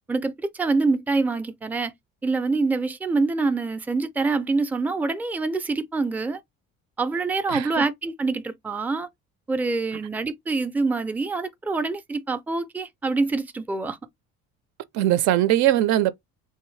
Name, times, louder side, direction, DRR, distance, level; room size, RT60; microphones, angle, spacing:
voice 1, 0.1-1.9 2.2-6.4 7.0-9.1 9.5-14.0, right 3 dB, 5° right, 0.4 m, -25 dB
voice 2, 7.5-7.8 14.9-16.1, right 13 dB, 70° right, 0.5 m, -20 dB
3.4 x 2.8 x 3.1 m
cardioid pair, 110°, 30 cm